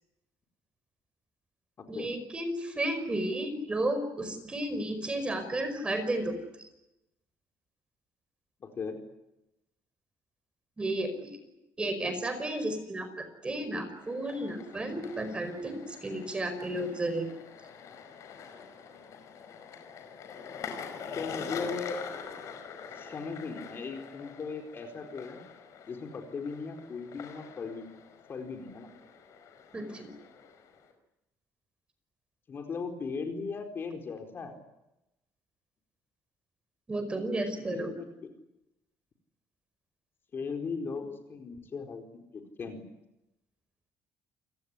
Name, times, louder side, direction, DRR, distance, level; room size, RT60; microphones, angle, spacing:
voice 1, 1.9-6.3 10.8-11.3 11.8-17.2 29.7-30.1 36.9-37.9, right 1 dB, 15° right, 9 dB, 5.1 m, -33 dB
voice 2, 8.6-9.0 21.1-22.0 22.9-25.4 25.9-27.8 28.3-28.9 32.5-34.6 37.7-38.3 40.3-42.0 42.3-42.8, left 4 dB, 35° left, 4 dB, 4.4 m, -38 dB
sound 1, 14.0-30.9, left 6 dB, 50° left, 5.2 m, -45 dB
29.0 x 18.0 x 10.0 m, 0.91 s
cardioid pair, 140°, 7 cm